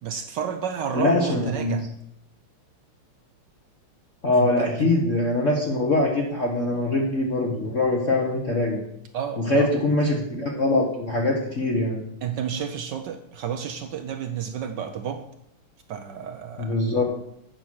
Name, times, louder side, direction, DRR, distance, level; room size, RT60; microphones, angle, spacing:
voice 1, 0.0-1.8 4.3-5.0 9.1-9.8 12.2-15.3 15.9-16.8, right 8 dB, 70° right, 7 dB, 1.1 m, -31 dB
voice 2, 0.9-1.8 4.2-8.8 9.4-12.0 16.6-17.0, left 2 dB, 40° left, -2 dB, 1.3 m, -23 dB
8.6 x 5.9 x 6.2 m, 0.76 s
omnidirectional pair, 2.4 m